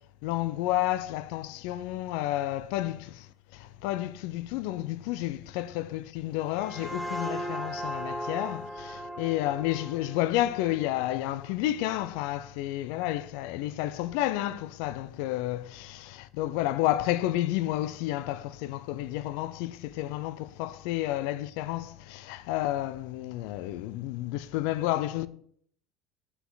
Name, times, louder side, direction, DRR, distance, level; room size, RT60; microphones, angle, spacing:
voice 1, 0.2-25.3, left 15 dB, 75° left, 0.5 m, -31 dB
sound 1, 6.3-11.8, equal, ahead, 0.9 m, -38 dB
8.1 x 5.8 x 3.9 m
cardioid pair, 135°, 0 cm